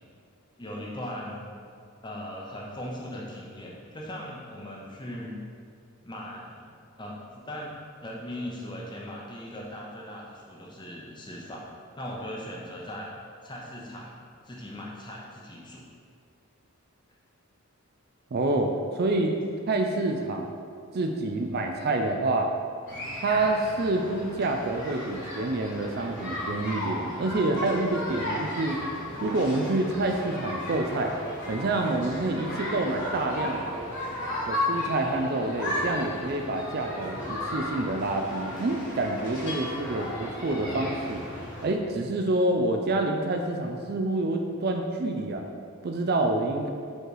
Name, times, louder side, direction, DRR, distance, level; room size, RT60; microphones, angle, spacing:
voice 1, 0.6-1.4 2.0-5.4 6.0-6.6 7.0-7.7 8.0-11.6 12.0-13.1 13.4-14.1 14.4-15.8, equal, 20° left, -2 dB, 0.7 m, -39 dB
voice 2, 18.3-19.3 19.7-20.5 20.9-22.5 23.1-28.8 29.2-31.1 31.5-33.7 34.4-41.2 41.6-45.4 45.8-46.7, right 2 dB, 45° right, 4 dB, 0.4 m, -27 dB
sound 1, 22.9-41.7, left 1 dB, 55° left, 1.5 m, -35 dB
5.2 x 3.8 x 4.8 m, 2.3 s
head